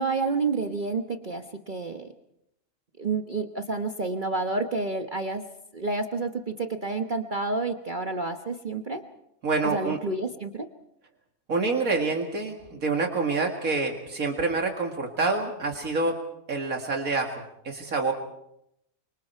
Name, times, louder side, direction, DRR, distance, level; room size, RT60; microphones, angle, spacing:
voice 1, 0.0-2.1 3.0-5.4 5.7-9.0 9.6-10.7, right 3 dB, 35° right, 5 dB, 1.2 m, -29 dB
voice 2, 9.4-10.0 11.5-16.2 16.5-18.1, right 3 dB, 75° right, 2 dB, 2.5 m, -27 dB
28.0 x 25.5 x 4.5 m, 0.78 s
omnidirectional pair, 1.5 m